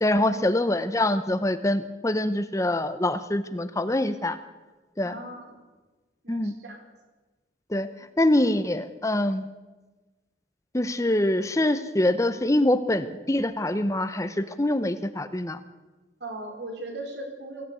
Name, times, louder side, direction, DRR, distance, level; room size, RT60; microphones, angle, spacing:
voice 1, 0.0-4.4 5.0-5.1 6.3-6.5 7.7-7.9 8.2-9.5 10.7-15.6, left 1 dB, 15° left, 11 dB, 0.8 m, -24 dB
voice 2, 5.0-5.6 6.2-6.8 16.2-17.6, right 2 dB, 70° right, 3 dB, 4.9 m, -38 dB
23.5 x 15.5 x 8.4 m, 1.2 s
head